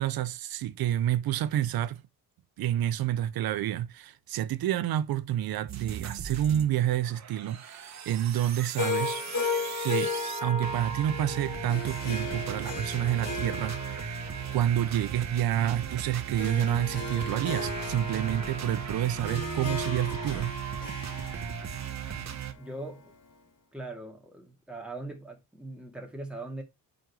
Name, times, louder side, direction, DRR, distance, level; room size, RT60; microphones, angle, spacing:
voice 1, 0.0-2.0 2.6-9.2 9.8-10.1 10.4-20.5, right 11 dB, 85° right, 0.7 m, -29 dB
sound 1, 5.7-6.7 7.0-22.5, right 8 dB, 50° right, 1.4 m, -37 dB
Harp, 8.8-23.1, left 3 dB, 65° left, 2.2 m, -36 dB
voice 2, 22.2-23.1 23.7-26.6, right 2 dB, 5° right, 2.2 m, -41 dB
7.7 x 5.2 x 4.6 m
wide cardioid pair, 150°, 35 cm